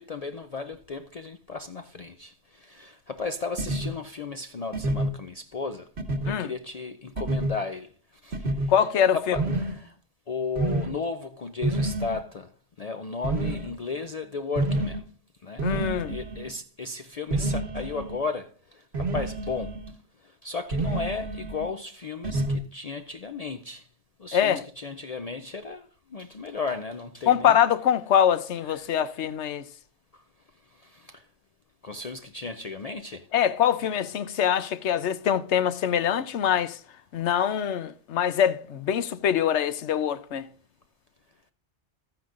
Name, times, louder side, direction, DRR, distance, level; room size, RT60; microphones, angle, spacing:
voice 1, 0.0-5.9 6.3-7.9 8.2-8.7 9.1-9.9 10.3-12.5 12.8-15.0 15.4-15.7 16.1-19.7 20.4-23.9 24.2-27.6 28.7-28.9 30.8-31.2 31.8-33.3, left 4 dB, 50° left, 0.5 m, -35 dB
sound 1, 3.6-3.9 4.7-5.1 6.0-6.3 7.2-7.5 8.3-8.7 9.3-9.8 10.6-10.9 11.6-12.2 13.2-13.7 14.6-15.0 15.6-16.5 17.3-18.2 18.9-19.9 20.7-21.7 22.2-22.6, right 2 dB, 65° right, 1.6 m, -28 dB
voice 2, 8.7-9.4 15.6-16.2 24.3-24.6 27.3-29.6 33.3-36.8 37.1-40.5, left 9 dB, 80° left, 1.0 m, -24 dB
13.5 x 9.4 x 2.5 m
omnidirectional pair, 1.2 m